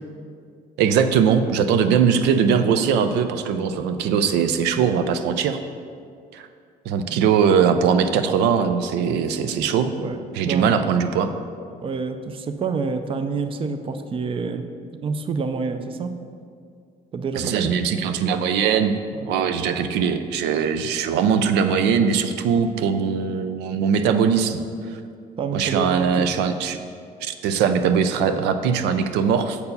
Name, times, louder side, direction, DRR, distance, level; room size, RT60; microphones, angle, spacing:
voice 1, 0.8-5.6 6.3-6.5 6.9-9.9 10.3-11.3 17.4-18.9 19.3-24.6 25.5-26.8 27.2-29.6, right 7 dB, 85° right, 9 dB, 0.4 m, -21 dB
voice 2, 10.0-10.8 11.8-14.6 15.0-16.1 17.1-17.8 25.4-26.3 28.3-28.4, right 4 dB, 30° right, 8 dB, 0.5 m, -28 dB
6.8 x 4.7 x 5.3 m, 2.2 s
cardioid pair, 110°, 17 cm